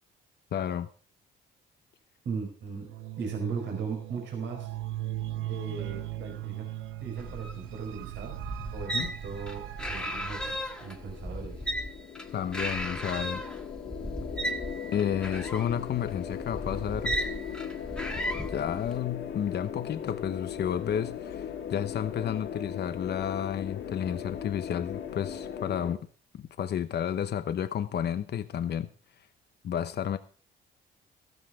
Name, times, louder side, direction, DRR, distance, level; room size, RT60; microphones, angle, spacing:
voice 1, 0.5-0.9 8.9-9.1 12.3-13.4 14.9-17.2 18.5-26.0 26.3-28.9 29.6-30.2, left 9 dB, 55° left, 0.9 m, -31 dB
voice 2, 2.2-2.9 3.2-4.7 5.5-6.7 7.0-8.4 8.7-11.7, right 5 dB, 65° right, 4.7 m, -38 dB
sound 1, 2.8-11.1, right 14 dB, 90° right, 0.7 m, -39 dB
sound 2, 7.2-19.0, equal, 5° left, 1.7 m, -36 dB
sound 3, 10.5-26.0, left 8 dB, 80° left, 2.1 m, -39 dB
14.0 x 13.5 x 3.6 m
cardioid pair, 90°, 20 cm